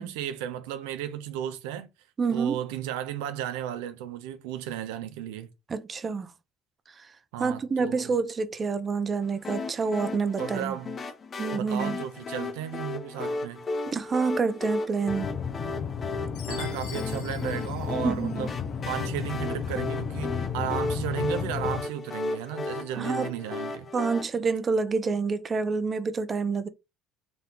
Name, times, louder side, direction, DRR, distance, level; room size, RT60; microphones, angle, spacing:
voice 1, 0.0-1.9 2.3-5.5 7.3-8.1 10.4-10.9 11.5-13.6 16.5-18.5 18.9-23.9, right 11 dB, 85° right, 0.5 m, -34 dB
voice 2, 2.2-2.6 5.7-6.3 7.4-10.7 11.4-12.0 13.9-15.3 18.0-18.5 23.0-23.3 23.9-26.7, right 4 dB, 30° right, 0.7 m, -28 dB
sound 1, 9.4-24.2, left 3 dB, 35° left, 1.1 m, -35 dB
sound 2, 15.1-21.8, left 6 dB, 50° left, 0.6 m, -33 dB
Chime, 16.3-18.7, left 7 dB, 75° left, 1.1 m, -46 dB
3.9 x 2.7 x 3.8 m
supercardioid pair, 90°, 0 cm